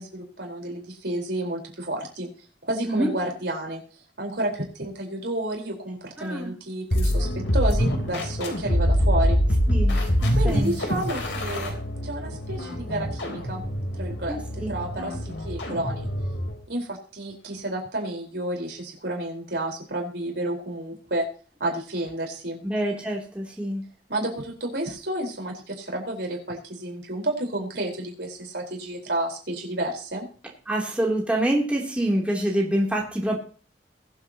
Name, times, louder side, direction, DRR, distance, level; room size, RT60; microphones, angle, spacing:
voice 1, 0.0-2.3 2.6-3.8 4.2-7.3 7.5-9.4 10.3-11.7 12.0-13.6 13.9-14.4 14.7-16.1 16.7-21.3 21.6-22.6 24.1-30.3, right 1 dB, 65° right, 0 dB, 4.5 m, -30 dB
voice 2, 6.2-6.5 9.7-10.7 14.3-14.7 22.6-23.8 30.7-33.4, right 1 dB, 5° right, -2 dB, 3.1 m, -26 dB
sound 1, 6.9-16.6, equal, 90° left, 3.7 m, -25 dB
22.5 x 8.1 x 2.9 m, 0.40 s
head